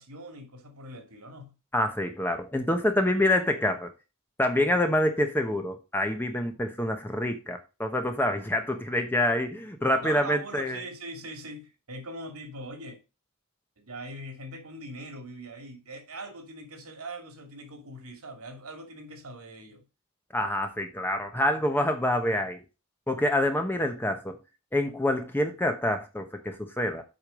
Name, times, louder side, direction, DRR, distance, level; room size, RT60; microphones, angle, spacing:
voice 1, 0.0-1.5 10.0-13.0 13.8-19.8, right 1 dB, 80° right, 2.5 m, -41 dB
voice 2, 1.7-3.9 4.4-10.8 20.3-22.6 23.1-24.4 24.7-27.0, left 1 dB, 10° left, 1.0 m, -26 dB
8.0 x 5.2 x 5.1 m
head